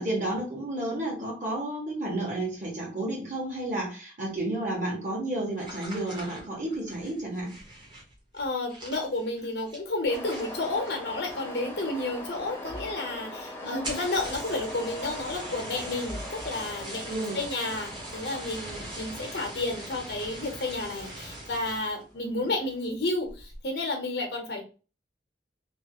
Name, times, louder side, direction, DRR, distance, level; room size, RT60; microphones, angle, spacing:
voice 1, 0.0-7.5 13.6-14.0 17.1-17.4 22.2-22.4, right 1 dB, 45° right, -3 dB, 1.5 m, -31 dB
sound 1, 5.5-11.7 12.0-12.5 12.8-12.9 13.1-13.2 13.7-22.0 22.5-22.8 23.2-23.6, right 1 dB, 25° right, 1.0 m, -42 dB
voice 2, 8.3-24.6, left 2 dB, 70° left, 3 dB, 0.9 m, -31 dB
sound 2, 10.1-22.8, left 1 dB, 15° left, 0.6 m, -42 dB
3.1 x 2.5 x 3.0 m, 0.35 s
head